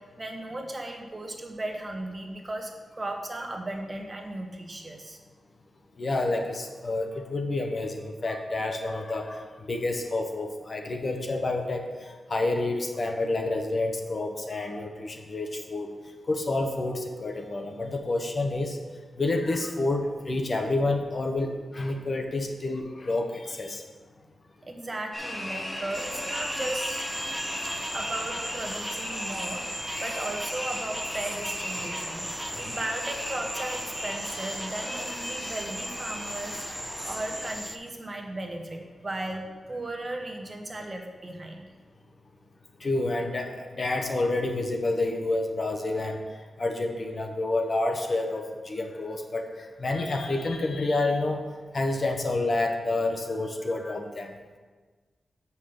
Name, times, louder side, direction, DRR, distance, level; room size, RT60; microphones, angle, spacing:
voice 1, 0.0-5.2 24.6-27.1 27.9-32.2 32.6-36.7 37.0-41.7, right 1 dB, 25° right, 2 dB, 1.2 m, -36 dB
voice 2, 6.0-11.8 12.3-15.9 16.3-18.8 19.2-23.8 42.8-43.5 43.8-46.2 46.6-49.5 49.8-51.4 51.7-54.3, left 2 dB, 40° left, 4 dB, 1.0 m, -29 dB
sound 1, 25.1-37.5, equal, 25° left, 2.1 m, -37 dB
sound 2, 25.9-37.8, right 1 dB, 10° right, 0.6 m, -37 dB
7.4 x 5.7 x 6.7 m, 1.4 s
wide cardioid pair, 110°, 0 cm